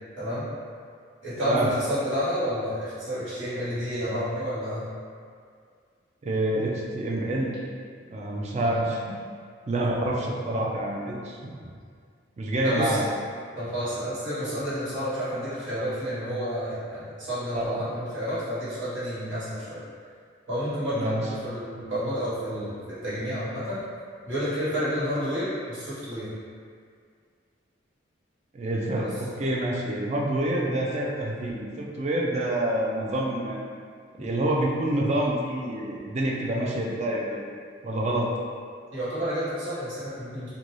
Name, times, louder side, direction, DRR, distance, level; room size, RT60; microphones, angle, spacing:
voice 1, 0.2-0.5 1.2-4.8 8.6-8.9 12.6-13.0 13.5-19.8 20.5-22.7 23.0-23.8 24.3-26.3 28.9-29.1 38.9-40.6, equal, 80° right, -12 dB, 1.3 m, -30 dB
voice 2, 6.2-7.5 8.1-9.1 9.7-11.6 12.4-13.1 17.5-17.8 20.9-21.2 28.5-33.6 34.2-37.5 37.8-38.3, right 1 dB, 35° right, -2 dB, 0.3 m, -27 dB
2.6 x 2.2 x 3.1 m, 2.1 s
head